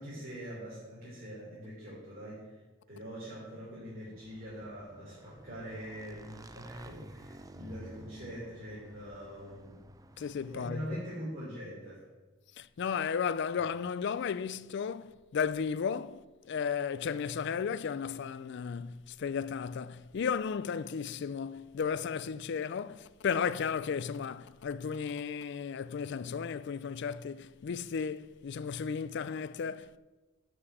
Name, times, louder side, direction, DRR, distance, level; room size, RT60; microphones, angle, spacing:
voice 1, 0.0-2.6 2.9-9.8 10.5-12.0, equal, 45° right, 3.3 m, -43 dB
Motorcycle / Engine, 3.8-11.2, right 1 dB, 15° right, 0.5 m, -52 dB
voice 2, 10.2-10.8 12.6-30.0, left 6 dB, 60° left, 0.4 m, -34 dB
7.9 x 6.1 x 7.8 m
head